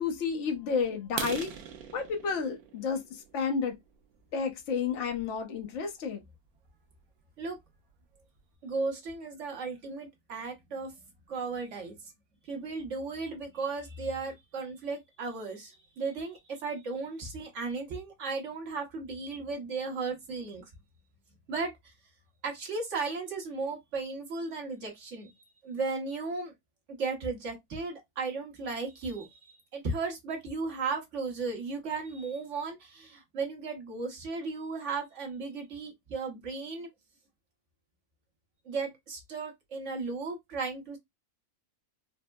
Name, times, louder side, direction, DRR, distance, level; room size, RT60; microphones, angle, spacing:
voice 1, 0.0-1.5 1.9-3.8 4.3-6.2, left 5 dB, 60° left, 1.0 m, -31 dB
sound 1, 1.1-4.8 5.4-5.5 6.0-6.1 6.5-6.7 7.0-7.1 7.6-7.7 7.9-8.4, right 8 dB, 90° right, 1.1 m, -41 dB
voice 2, 8.6-11.0 11.3-11.9 12.4-20.6 21.5-21.9 22.4-25.3 25.6-26.5 27.0-36.9 38.6-41.0, right 4 dB, 55° right, 1.3 m, -35 dB
4.2 x 2.0 x 2.2 m
omnidirectional pair, 1.6 m